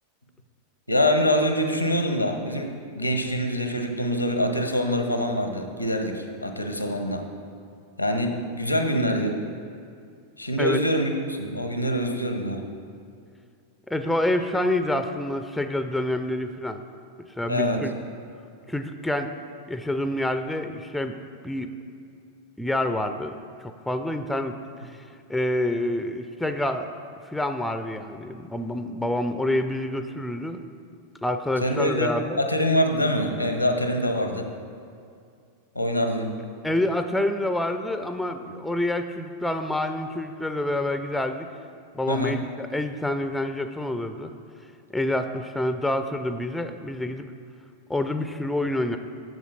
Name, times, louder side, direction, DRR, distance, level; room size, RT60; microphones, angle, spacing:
voice 1, 0.9-7.2 8.0-9.4 10.4-12.6 17.5-17.9 31.6-34.5 35.7-36.3 42.1-42.4, equal, 90° left, 5 dB, 0.9 m, -25 dB
voice 2, 13.9-16.8 17.4-17.9 18.7-19.3 19.7-21.2 21.4-21.7 22.6-24.6 24.8-25.0 25.3-26.9 27.3-30.6 31.2-32.4 36.6-41.5 41.9-44.3 44.9-47.3 47.9-49.0, left 1 dB, 5° left, 8 dB, 0.5 m, -27 dB
8.0 x 7.0 x 6.0 m, 2.4 s
figure-of-eight pair, 90°, 0 cm